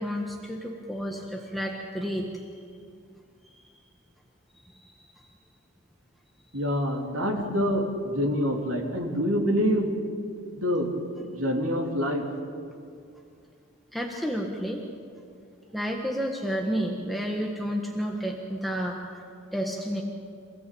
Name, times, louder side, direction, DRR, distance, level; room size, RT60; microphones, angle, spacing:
voice 1, 0.0-2.6 4.6-5.3 13.9-14.8 15.7-19.2 19.5-20.0, equal, ahead, -1 dB, 1.5 m, -31 dB
voice 2, 6.5-10.0 10.6-10.9 11.2-12.2, equal, 85° right, -1 dB, 3.6 m, -26 dB
28.0 x 17.0 x 8.6 m, 2.3 s
head